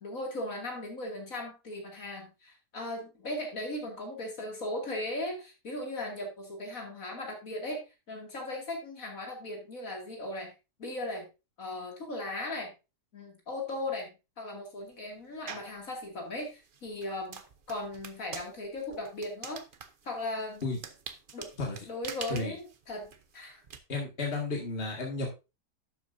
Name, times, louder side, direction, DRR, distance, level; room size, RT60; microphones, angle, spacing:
voice 1, 0.0-10.5 10.8-11.3 11.6-12.7 13.1-17.4 17.7-19.6 20.0-20.6 21.3-21.5 21.9-23.6, left 1 dB, 55° left, 1 dB, 2.9 m, -37 dB
sound 1, 15.5-15.8 16.4-23.8, right 6 dB, 45° right, 0.8 m, -45 dB
voice 2, 23.9-25.3, left 3 dB, 35° left, -1 dB, 2.2 m, -32 dB
11.5 x 7.7 x 2.6 m, 0.27 s
omnidirectional pair, 1.7 m